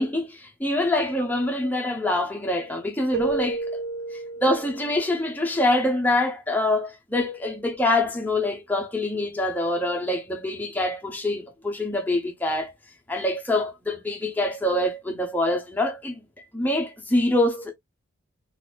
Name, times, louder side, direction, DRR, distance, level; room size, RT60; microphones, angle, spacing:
voice 1, 0.0-3.7 4.1-12.7 13.1-16.2 16.5-17.7, left 1 dB, 10° left, 0.7 m, -25 dB
Keyboard (musical), 3.1-5.1, right 3 dB, 55° right, 0.8 m, -31 dB
4.0 x 2.5 x 2.3 m
head